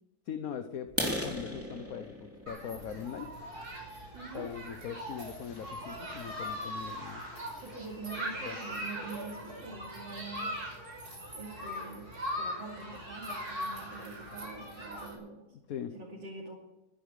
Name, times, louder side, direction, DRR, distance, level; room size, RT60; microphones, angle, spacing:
voice 1, 0.3-3.3 4.3-7.2 8.4-8.6 15.7-15.9, left 8 dB, 55° left, 8 dB, 1.2 m, -41 dB
sound 1, 0.9-4.6 5.2-5.3 5.8-5.9 6.3-6.5 6.8-6.9 7.4-7.5 7.7-8.2, equal, 5° right, 2.8 m, -38 dB
sound 2, 2.4-2.5 2.7-8.9, left 3 dB, 75° left, 2.9 m, -55 dB
Human group actions, 2.5-15.1, equal, 50° right, 6.3 m, -40 dB
voice 2, 4.1-4.5 7.6-10.6 11.3-12.1 12.4-15.4 15.9-16.6, right 3 dB, 80° right, -4 dB, 3.7 m, -45 dB
13.0 x 10.0 x 9.8 m, 0.96 s
omnidirectional pair, 2.0 m